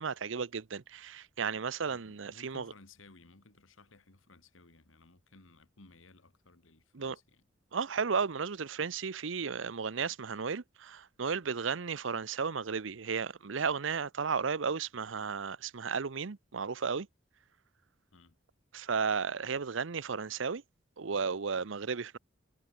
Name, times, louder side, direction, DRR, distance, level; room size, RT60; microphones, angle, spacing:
voice 1, 0.0-2.7 6.9-7.2 7.7-17.1 18.7-20.6 21.0-22.2, right 5 dB, 70° right, 0.7 m, -34 dB
voice 2, 1.9-7.5 18.1-18.4, left 3 dB, 90° left, 2.1 m, -58 dB
head